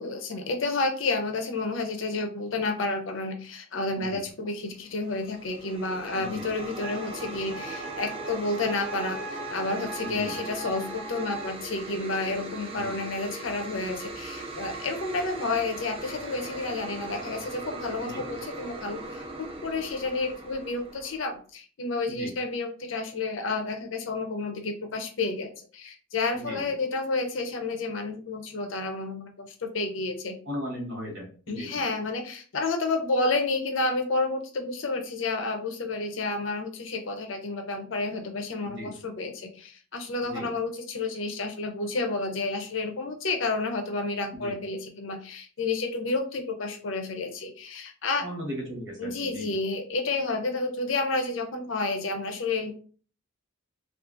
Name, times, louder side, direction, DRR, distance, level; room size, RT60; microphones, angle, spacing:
voice 1, 0.0-30.4 31.5-48.3 49.0-52.7, left 3 dB, 90° left, 5 dB, 0.6 m, -30 dB
sound 1, 4.9-21.4, right 2 dB, 30° right, 0.3 m, -39 dB
Wind instrument woodwind instrument, 6.8-11.5, right 2 dB, 5° right, 0.7 m, -41 dB
voice 2, 10.0-10.4 12.7-12.9 18.0-18.2 22.1-22.3 26.3-26.7 30.5-31.8 38.6-38.9 40.2-40.5 44.3-44.6 48.2-49.6, equal, 70° right, 1 dB, 1.0 m, -37 dB
2.6 x 2.4 x 2.5 m, 0.41 s
head